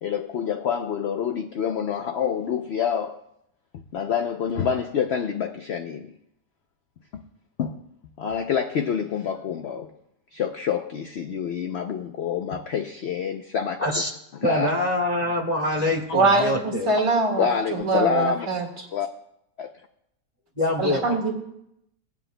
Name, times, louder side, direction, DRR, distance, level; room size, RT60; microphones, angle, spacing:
voice 1, 0.0-3.2 3.9-6.1 7.1-7.2 7.6-7.8 8.2-9.9 10.3-14.0 14.4-14.7 17.4-18.5 18.9-19.1 19.6-19.7 21.1-21.2, left 7 dB, 65° left, 6 dB, 0.6 m, -27 dB
voice 2, 14.4-16.9 20.6-21.1, left 1 dB, 25° left, -1 dB, 1.6 m, -24 dB
voice 3, 16.1-18.6 20.8-21.3, right 3 dB, 55° right, 2 dB, 2.1 m, -23 dB
18.0 x 9.5 x 2.2 m, 0.79 s
omnidirectional pair, 1.7 m